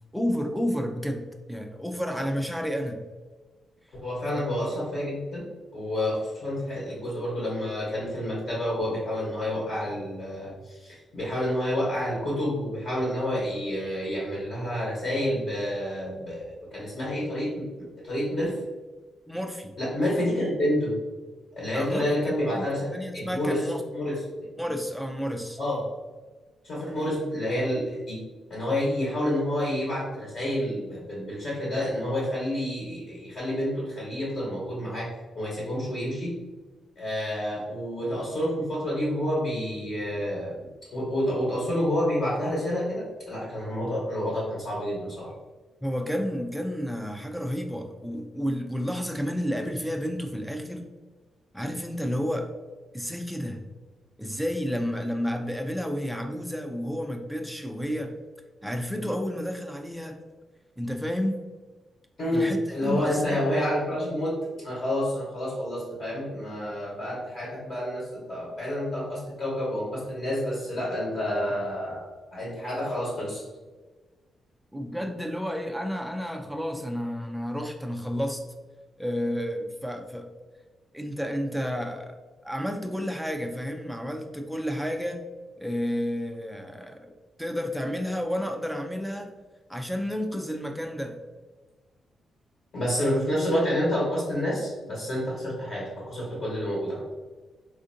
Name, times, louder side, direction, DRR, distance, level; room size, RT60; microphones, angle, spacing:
voice 1, 0.1-3.0 4.4-4.5 19.3-19.7 21.7-22.6 22.9-23.8 24.6-25.6 45.8-50.8 51.5-52.5 52.9-53.6 54.2-58.1 58.6-60.2 60.8-61.4 62.3-63.4 74.7-78.4 79.0-80.3 80.9-82.2 82.4-85.2 85.6-87.1 87.4-89.3 89.7-91.2, equal, ahead, 4 dB, 0.3 m, -31 dB
voice 2, 4.0-18.6 19.8-21.0 21.5-23.6 23.9-24.2 25.6-25.8 26.6-28.2 28.5-36.4 37.0-45.3 62.2-73.4 92.7-97.0, left 1 dB, 40° left, -5 dB, 0.9 m, -29 dB
4.2 x 2.5 x 2.6 m, 1.3 s
wide cardioid pair, 170°, 0 cm